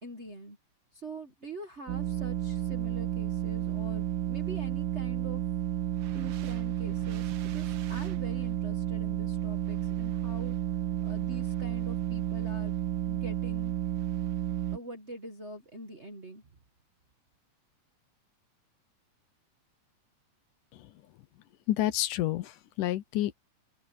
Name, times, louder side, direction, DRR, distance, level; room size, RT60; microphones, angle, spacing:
voice 1, 0.0-0.6 0.9-5.4 6.1-10.5 11.0-12.7 13.1-13.8 14.7-16.4, right 1 dB, 45° right, 0.8 m, -44 dB
sound 1, 1.9-14.8, right 13 dB, 90° right, 2.9 m, -32 dB
voice 2, 21.7-23.4, left 14 dB, 75° left, 2.5 m, -29 dB
open air
omnidirectional pair, 3.8 m